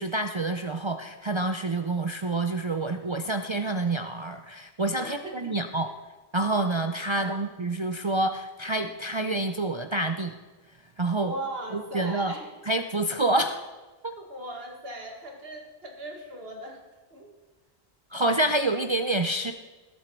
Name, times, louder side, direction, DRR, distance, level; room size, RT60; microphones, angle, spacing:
voice 1, 0.0-5.9 6.3-10.3 11.0-11.3 11.7-12.3 12.7-13.6 14.0-14.1 18.1-19.5, right 2 dB, 40° right, 6 dB, 0.4 m, -27 dB
voice 2, 5.0-5.6 7.1-7.5 11.2-12.6 14.2-16.8 17.1-17.4, right 1 dB, 65° right, 1 dB, 2.2 m, -39 dB
19.5 x 7.1 x 4.5 m, 1.2 s
omnidirectional pair, 1.1 m